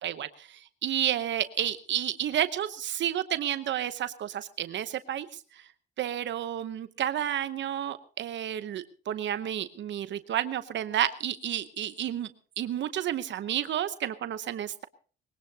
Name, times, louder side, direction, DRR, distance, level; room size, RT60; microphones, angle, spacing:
voice 1, 0.0-5.6 6.0-12.3 12.6-14.8, right 11 dB, 65° right, 12 dB, 0.9 m, -31 dB
21.5 x 17.5 x 2.8 m, 0.40 s
cardioid pair, 90°, 20 cm